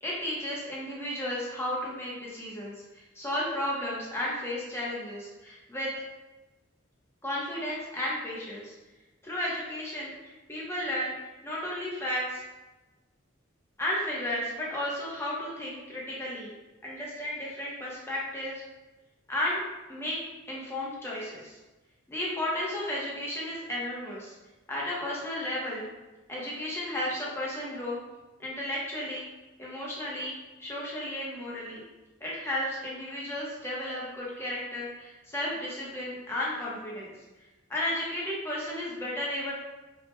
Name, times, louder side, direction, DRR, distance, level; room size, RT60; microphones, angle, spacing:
voice 1, 0.0-5.9 7.2-8.7 9.2-11.1 11.4-12.4 13.8-16.5 16.8-18.6 19.3-19.6 19.9-20.2 20.5-21.6 22.1-24.3 24.7-25.9 26.3-28.0 28.4-29.2 29.6-30.3 30.6-31.8 32.2-37.1 37.7-39.5, left 1 dB, 10° left, -6 dB, 0.6 m, -33 dB
2.9 x 2.1 x 3.1 m, 1.1 s
head